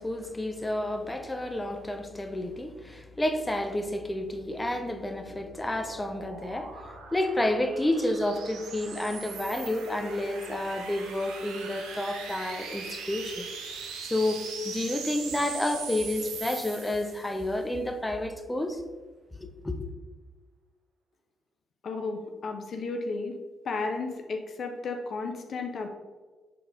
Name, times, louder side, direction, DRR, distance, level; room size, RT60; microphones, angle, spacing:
voice 1, 0.0-6.8 7.1-13.5 13.8-18.8 19.4-19.8, left 1 dB, 15° left, 6 dB, 0.9 m, -30 dB
sound 1, 4.9-17.5, right 5 dB, 80° right, 0.9 m, -41 dB
voice 2, 21.8-23.4 23.6-25.9, left 3 dB, 60° left, 4 dB, 0.7 m, -33 dB
6.6 x 4.0 x 3.8 m, 1.3 s
hypercardioid pair, 45°, 0 cm